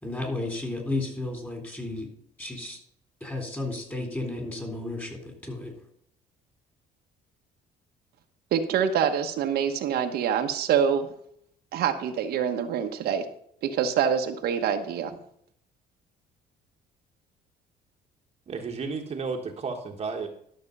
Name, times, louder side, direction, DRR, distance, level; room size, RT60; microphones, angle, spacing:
voice 1, 0.0-2.1 2.4-2.8 3.2-5.7, left 2 dB, 10° left, 3 dB, 3.7 m, -33 dB
voice 2, 8.5-11.1 11.7-13.2 13.6-15.1, right 8 dB, 70° right, 5 dB, 1.1 m, -25 dB
voice 3, 18.5-20.3, right 4 dB, 35° right, 2 dB, 1.3 m, -32 dB
12.0 x 6.7 x 5.4 m, 0.67 s
cardioid pair, 110°, 17 cm